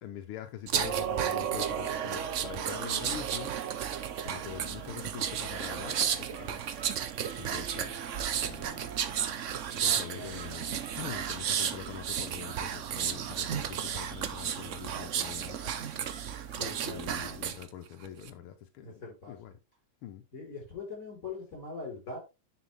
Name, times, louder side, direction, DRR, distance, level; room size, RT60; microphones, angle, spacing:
voice 1, 0.0-3.5 4.2-6.6 7.4-8.0 8.3-8.9 9.7-15.7 16.8-19.0 19.3-19.6 20.0-20.2, left 10 dB, 90° left, 1.7 m, -44 dB
sound 1, 0.7-17.6 18.0-18.3, right 8 dB, 75° right, 0.7 m, -33 dB
sound 2, 5.6-8.5 9.1-11.0 11.8-12.0 16.1-16.7, right 5 dB, 40° right, 1.0 m, -51 dB
voice 2, 9.8-10.3 16.6-17.5 18.8-19.4 20.3-22.2, left 3 dB, 40° left, 4.8 m, -42 dB
10.0 x 5.1 x 3.4 m
omnidirectional pair, 2.3 m